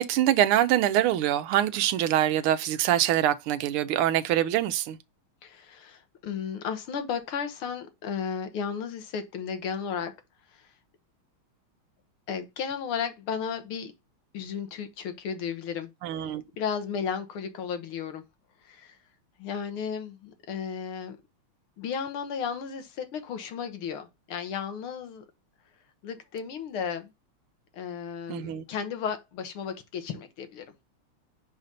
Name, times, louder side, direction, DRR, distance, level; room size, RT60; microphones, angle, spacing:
voice 1, 0.0-5.0 16.0-16.4 28.3-28.6, right 12 dB, 85° right, 1.5 m, -24 dB
voice 2, 5.4-10.1 10.5-10.7 12.3-13.9 14.3-15.9 16.2-18.2 18.6-19.0 19.4-21.2 21.8-25.3 26.0-27.1 27.7-30.7, left 7 dB, 75° left, 1.9 m, -34 dB
5.2 x 4.9 x 4.1 m
omnidirectional pair, 2.4 m